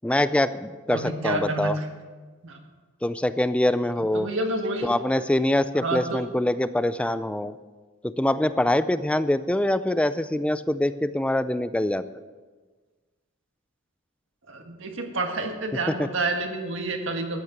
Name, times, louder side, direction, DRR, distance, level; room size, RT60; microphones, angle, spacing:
voice 1, 0.0-1.7 3.0-4.3 4.8-7.5 8.0-12.0 16.0-16.1, left 1 dB, 5° left, 14 dB, 0.3 m, -24 dB
voice 2, 0.9-1.9 2.4-2.6 4.0-4.9 5.7-6.3 14.5-17.4, right 2 dB, 65° right, 4 dB, 1.6 m, -29 dB
13.0 x 9.4 x 6.0 m, 1.4 s
head